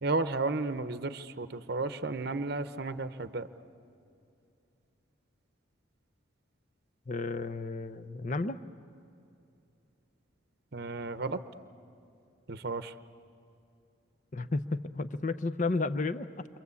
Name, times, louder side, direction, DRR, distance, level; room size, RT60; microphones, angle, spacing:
voice 1, 0.0-3.5 10.7-11.4 12.5-12.9, right 3 dB, 50° right, 12 dB, 0.8 m, -33 dB
voice 2, 7.1-8.6 14.3-16.5, left 3 dB, 40° left, 13 dB, 0.7 m, -32 dB
28.5 x 25.0 x 8.4 m, 2.7 s
head